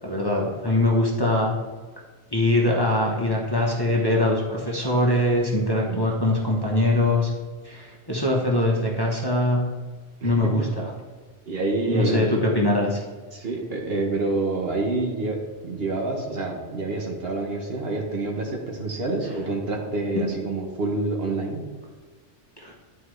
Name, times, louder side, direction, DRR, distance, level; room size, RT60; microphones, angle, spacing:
voice 1, 0.0-1.6 2.3-7.3 7.6-9.7 10.2-10.9 11.9-13.0 20.1-20.2 22.6-22.7, left 1 dB, 20° left, -3 dB, 1.0 m, -22 dB
voice 2, 10.2-10.5 11.5-12.3 13.3-21.7, right 2 dB, 55° right, 1 dB, 1.2 m, -27 dB
11.0 x 4.5 x 3.2 m, 1.4 s
omnidirectional pair, 1.2 m